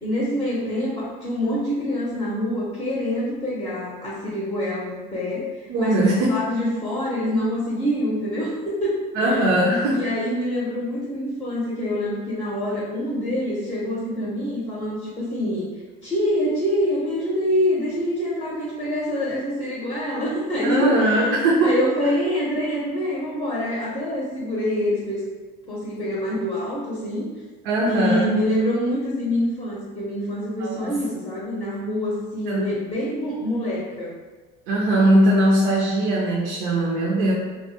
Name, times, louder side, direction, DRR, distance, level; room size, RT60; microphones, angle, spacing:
voice 1, 0.0-9.4 9.9-15.7 16.0-25.2 25.7-27.3 27.8-34.1, equal, 20° left, -6 dB, 0.6 m, -26 dB
voice 2, 5.7-6.4 9.1-10.0 20.6-21.8 27.6-28.4 30.6-31.0 32.5-32.7 34.7-37.3, right 1 dB, 70° right, -4 dB, 0.5 m, -20 dB
2.3 x 2.0 x 2.7 m, 1.3 s
supercardioid pair, 110°, 20 cm